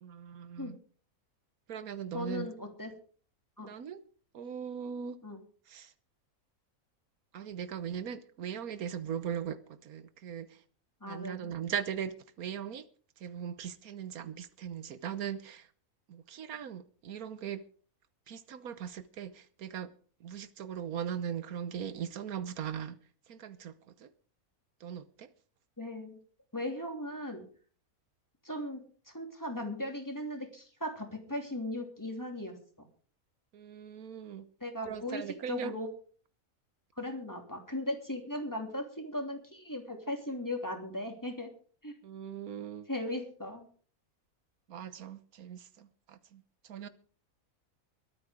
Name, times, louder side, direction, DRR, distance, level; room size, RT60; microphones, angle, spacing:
voice 1, 0.0-0.8 1.7-2.5 3.6-4.0 4.3-5.2 5.7-5.9 7.3-10.6 11.0-12.9 13.2-15.7 16.1-17.6 18.3-19.9 20.2-23.0 23.3-23.7 24.0-24.1 24.8-25.3 33.5-34.4 34.9-35.7 42.0-42.9 44.7-46.4 46.7-46.9, right 8 dB, 85° right, 1.4 m, -39 dB
voice 2, 2.1-2.9 3.6-3.7 5.2-5.4 11.0-11.5 25.8-26.2 26.5-27.5 28.4-32.6 34.6-35.9 37.0-41.5 41.8-42.0 42.9-43.7, left 1 dB, 15° left, 3.0 m, -38 dB
22.5 x 8.7 x 5.0 m
omnidirectional pair, 1.5 m